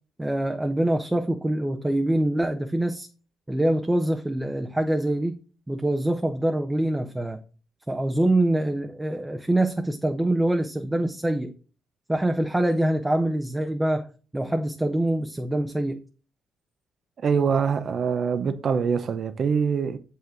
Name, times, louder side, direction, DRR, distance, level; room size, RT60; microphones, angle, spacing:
voice 1, 0.2-3.1 3.5-5.4 5.7-7.4 7.9-11.5 12.1-16.0, right 1 dB, 10° right, 0.8 m, -25 dB
voice 2, 17.2-20.0, right 6 dB, 55° right, 0.7 m, -24 dB
7.3 x 5.7 x 3.8 m
cardioid pair, 90°, 0 cm